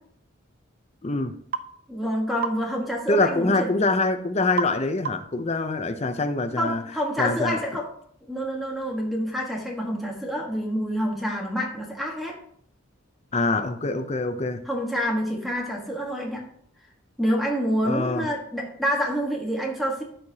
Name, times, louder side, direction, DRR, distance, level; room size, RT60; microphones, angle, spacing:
voice 1, 1.0-1.4 3.1-6.8 7.2-7.6 13.3-14.7 17.8-18.3, left 3 dB, 30° left, 9 dB, 0.6 m, -25 dB
sound 1, 1.5-1.7 2.4-2.6 4.6-4.8 5.0-5.4, right 6 dB, 45° right, 0.5 m, -29 dB
voice 2, 1.9-3.7 6.6-7.9 8.3-12.4 14.6-16.4 17.2-20.0, equal, ahead, -1 dB, 1.3 m, -27 dB
13.5 x 4.7 x 2.8 m, 0.64 s
head